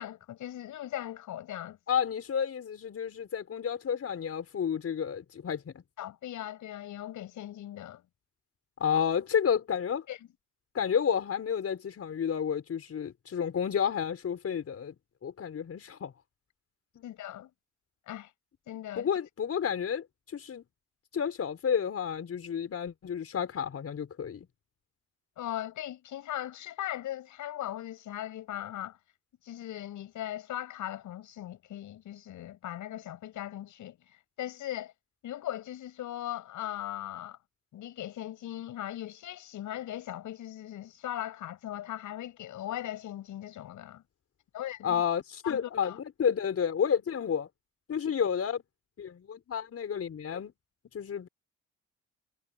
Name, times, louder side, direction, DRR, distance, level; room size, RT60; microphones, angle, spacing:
voice 1, 0.0-1.8 6.0-8.0 10.1-10.2 17.0-17.5 18.1-18.3 18.7-19.1 25.4-29.0 29.4-34.0 34.4-34.9 35.2-37.4 37.7-44.0 44.5-45.0 45.4-46.0, left 12 dB, 80° left, 6.9 m, -39 dB
voice 2, 1.9-5.8 8.8-10.1 10.7-15.0 15.2-16.1 17.0-17.1 19.0-20.6 21.1-24.5 44.8-47.5 47.9-48.6 49.0-50.5 50.9-51.3, left 7 dB, 50° left, 5.8 m, -31 dB
cardioid pair, 90°, 30 cm